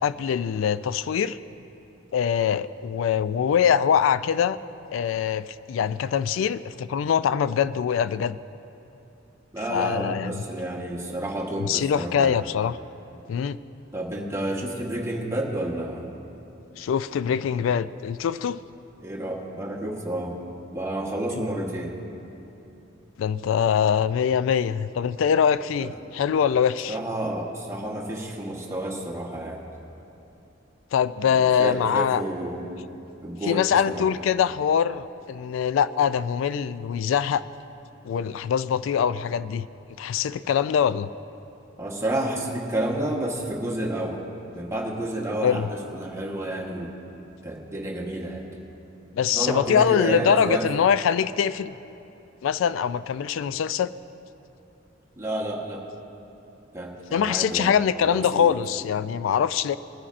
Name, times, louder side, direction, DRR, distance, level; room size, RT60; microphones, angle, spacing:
voice 1, 0.0-1.4 2.1-4.6 4.9-8.4 9.7-10.4 11.6-12.8 13.3-13.6 16.8-18.6 21.3-21.4 23.2-27.0 30.9-32.2 33.5-37.4 38.0-39.7 40.0-41.1 45.4-45.7 49.1-51.7 52.4-53.9 57.1-59.8, left 8 dB, 75° left, 16 dB, 0.3 m, -23 dB
voice 2, 9.5-12.4 13.9-16.1 19.0-20.4 20.7-22.0 25.8-25.9 26.9-29.6 31.3-32.7 33.2-34.2 41.8-44.2 44.5-46.9 47.4-48.5 49.3-50.7 55.2-55.9 56.7-58.5, right 1 dB, 15° right, -1 dB, 1.1 m, -30 dB
19.0 x 9.9 x 2.5 m, 2.9 s
head